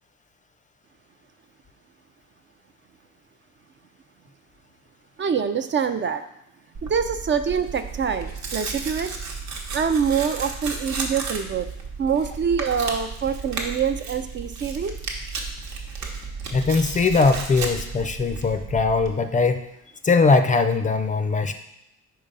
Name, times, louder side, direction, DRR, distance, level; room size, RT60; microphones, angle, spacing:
voice 1, 5.2-6.2 6.8-9.1 9.7-11.7 12.0-14.9, right 6 dB, 40° right, 9 dB, 0.4 m, -25 dB
Tearing, 6.7-19.1, right 4 dB, 70° right, 1.0 m, -33 dB
voice 2, 16.5-19.6 20.0-21.5, left 4 dB, 25° left, 8 dB, 0.4 m, -20 dB
4.7 x 3.8 x 5.3 m, 0.83 s
cardioid pair, 90°, 30 cm